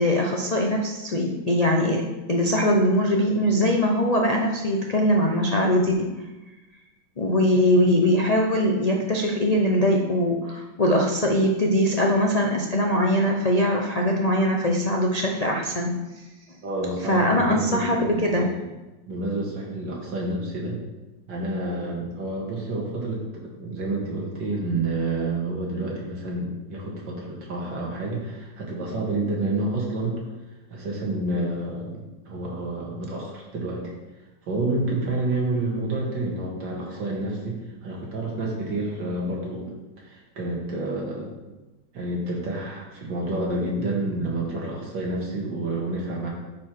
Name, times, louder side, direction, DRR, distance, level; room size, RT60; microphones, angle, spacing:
voice 1, 0.0-2.0 2.3-6.1 7.2-15.9 17.1-18.5, equal, 70° left, 0 dB, 0.3 m, -21 dB
voice 2, 16.6-18.7 19.1-20.8 21.3-30.2 30.7-33.9 34.5-39.7 40.0-41.3 41.9-46.3, right 2 dB, 75° right, -2 dB, 2.5 m, -29 dB
9.6 x 5.0 x 4.6 m, 1.1 s
omnidirectional pair, 2.0 m